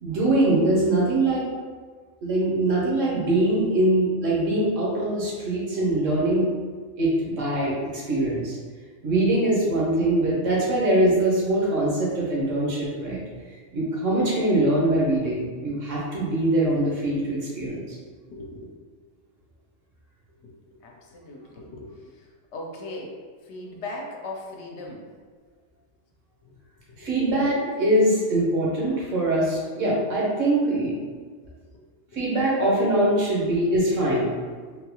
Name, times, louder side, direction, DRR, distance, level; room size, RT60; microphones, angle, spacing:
voice 1, 0.0-1.4 2.2-6.5 7.0-8.5 9.0-13.2 13.7-17.8 27.0-30.9 32.1-34.3, right 1 dB, 85° right, -6 dB, 1.3 m, -23 dB
voice 2, 18.1-18.7 20.4-20.6 20.8-22.1 22.5-23.1 23.4-25.1 26.4-26.6 26.9-27.2, left 2 dB, 70° left, -1 dB, 0.9 m, -39 dB
3.8 x 2.3 x 2.9 m, 1.5 s
omnidirectional pair, 1.3 m